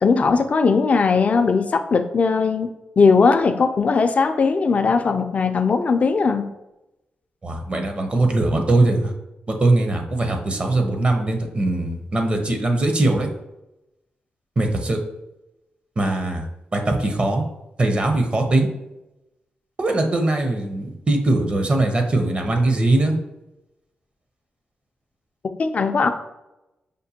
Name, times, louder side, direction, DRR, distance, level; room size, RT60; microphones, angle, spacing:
voice 1, 0.0-6.5 25.6-26.1, left 4 dB, 45° left, 7 dB, 0.3 m, -19 dB
voice 2, 7.4-9.1 9.5-13.3 14.6-15.0 16.0-16.5 16.7-17.4 17.8-18.7 19.8-23.2, right 2 dB, 35° right, 4 dB, 0.6 m, -21 dB
5.1 x 2.1 x 2.7 m, 0.92 s
cardioid pair, 85°, 3 cm